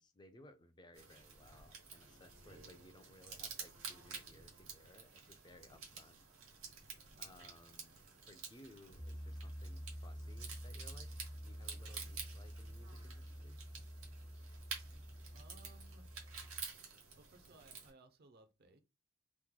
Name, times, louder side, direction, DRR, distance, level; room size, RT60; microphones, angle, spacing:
voice 1, 0.0-6.2 6.7-6.8 7.2-8.0 8.3-11.1 11.4-13.6, left 1 dB, 20° left, 0.4 m, -61 dB
sound 1, 0.9-17.9, right 5 dB, 90° right, 1.3 m, -51 dB
Piano, 8.9-16.6, equal, 85° left, 0.9 m, -49 dB
voice 2, 15.3-16.1 17.2-18.8, right 3 dB, 50° right, 0.5 m, -63 dB
3.0 x 2.1 x 3.7 m
head